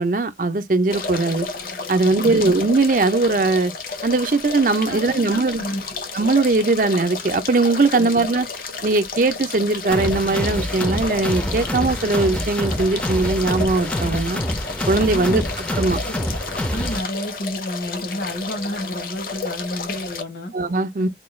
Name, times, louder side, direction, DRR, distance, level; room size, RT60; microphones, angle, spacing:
voice 1, 0.0-1.5 1.9-3.7 4.0-5.6 6.1-8.5 8.8-14.4 14.9-15.4 15.8-16.0 20.5-21.1, right 3 dB, 45° right, 0.5 m, -20 dB
sound 1, 0.9-20.2, left 4 dB, 50° left, 0.7 m, -32 dB
voice 2, 2.0-2.5 4.9-6.1 7.9-8.2 15.1-15.5 16.0-16.2 16.7-20.5 21.0-21.1, left 1 dB, 75° left, 1.2 m, -31 dB
sound 2, 9.9-17.0, left 1 dB, 5° left, 0.5 m, -26 dB
4.4 x 2.3 x 3.1 m
head